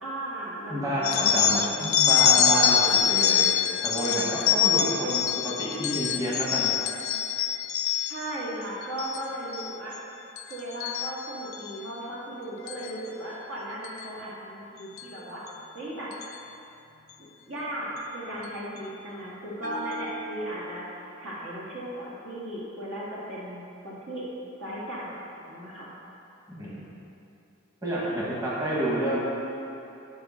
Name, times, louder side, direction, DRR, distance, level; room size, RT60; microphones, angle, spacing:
voice 1, 0.0-1.2 5.1-5.2 7.9-10.0 10.5-15.4 15.7-16.1 17.2-24.3 24.6-25.2 25.5-25.9 28.0-28.2, right 1 dB, 70° right, -6 dB, 1.9 m, -36 dB
voice 2, 0.7-3.4 3.8-6.7 26.5-26.8 27.8-29.2, right 1 dB, 15° right, -7 dB, 1.3 m, -29 dB
sound 1, 1.0-8.3 8.8-9.2 9.5-10.0 10.4-11.7 12.7-12.9 13.8-14.0 15.0-15.1 15.5-15.6 16.1-16.3, left 9 dB, 80° left, 0.4 m, -25 dB
Bell, 19.6-21.2, equal, 40° right, 1.0 m, -38 dB
6.4 x 5.0 x 6.3 m, 2.8 s
head